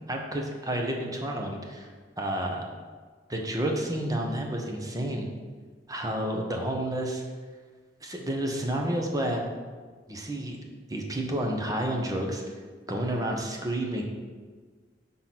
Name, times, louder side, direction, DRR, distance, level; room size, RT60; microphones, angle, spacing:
voice 1, 0.1-1.9 2.2-2.7 3.3-5.3 5.9-7.2 8.0-9.4 10.1-10.6 10.9-12.6 12.9-14.0, right 1 dB, 20° right, 1 dB, 0.9 m, -30 dB
5.8 x 3.8 x 5.9 m, 1.5 s
head